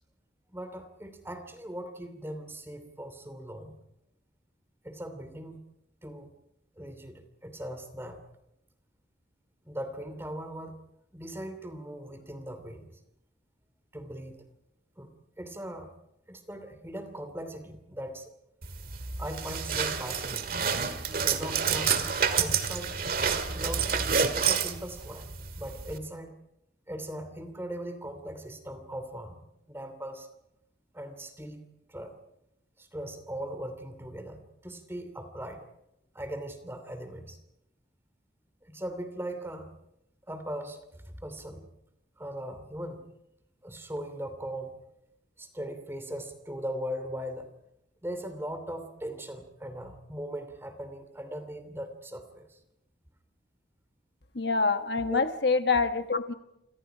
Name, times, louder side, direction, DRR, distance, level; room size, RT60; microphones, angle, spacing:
voice 1, 0.5-3.8 4.8-5.6 6.0-6.3 6.8-8.2 9.6-10.8 11.1-12.9 13.9-14.4 15.0-15.1 15.4-15.9 16.3-18.3 19.2-20.6 21.2-22.0 22.2-22.9 23.5-24.1 24.3-26.3 26.9-30.3 30.9-31.6 31.9-32.1 32.8-35.7 36.1-37.4 38.6-39.7 40.3-41.7 42.2-43.0 43.6-44.8 45.4-47.5 48.0-52.6 55.0-55.2, right 1 dB, 15° right, 9 dB, 2.8 m, -39 dB
sound 1, 18.6-26.0, right 6 dB, 55° right, 2.0 m, -29 dB
voice 2, 54.3-56.3, left 4 dB, 65° left, 8 dB, 1.2 m, -26 dB
27.5 x 27.0 x 5.0 m, 0.85 s
head